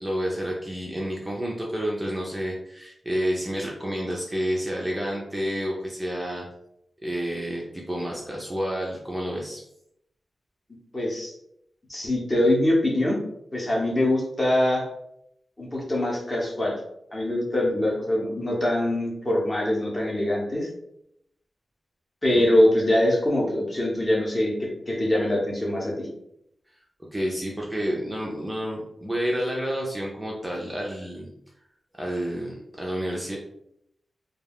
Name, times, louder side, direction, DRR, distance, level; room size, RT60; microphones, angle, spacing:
voice 1, 0.0-6.5 7.0-9.6 22.3-22.4 27.1-31.3 32.0-33.4, equal, 5° right, -3 dB, 0.4 m, -29 dB
voice 2, 10.9-11.3 11.9-13.2 13.5-14.9 15.6-16.8 17.1-20.7 22.2-26.1, left 1 dB, 25° left, -3 dB, 0.7 m, -23 dB
2.3 x 2.2 x 3.3 m, 0.76 s
wide cardioid pair, 165°, 0 cm